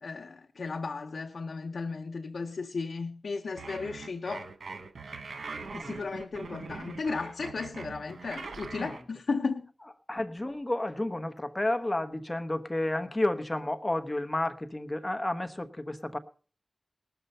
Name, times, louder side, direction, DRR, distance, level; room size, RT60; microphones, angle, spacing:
voice 1, 0.0-4.5 5.7-9.7, left 4 dB, 85° left, 0.7 m, -35 dB
sound 1, 3.6-9.0, right 4 dB, 90° right, 1.3 m, -42 dB
voice 2, 10.1-16.2, left 1 dB, 25° left, 1.2 m, -31 dB
19.5 x 6.8 x 5.5 m
cardioid pair, 50°, 0 cm